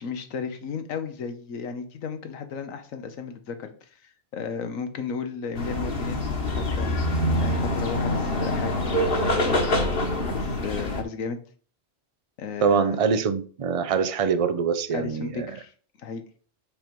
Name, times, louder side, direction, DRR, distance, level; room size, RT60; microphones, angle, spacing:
voice 1, 0.0-6.2 6.5-6.9 7.4-8.8 9.2-9.7 10.2-11.4 12.4-13.0 14.9-16.2, left 5 dB, 90° left, 1.3 m, -34 dB
sound 1, 5.6-11.0, left 1 dB, 45° left, 1.3 m, -25 dB
voice 2, 12.6-15.5, right 6 dB, 55° right, 0.3 m, -24 dB
5.4 x 4.5 x 5.2 m
omnidirectional pair, 1.3 m